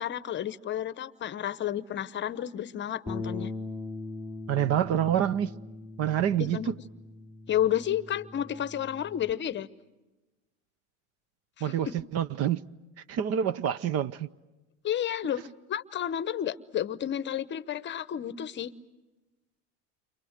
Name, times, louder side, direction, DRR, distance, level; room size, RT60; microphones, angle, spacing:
voice 1, 0.0-3.5 6.4-6.7 7.5-9.7 11.6-11.9 14.8-15.4 15.7-18.7, left 10 dB, 30° left, 0.9 m, -31 dB
Bass guitar, 3.1-9.3, left 3 dB, 10° right, 2.8 m, -40 dB
voice 2, 4.5-5.5 6.0-6.7 11.6-11.9 12.1-12.6 13.1-14.3, right 10 dB, 40° right, 0.8 m, -27 dB
30.0 x 27.0 x 6.6 m
supercardioid pair, 115°, 36 cm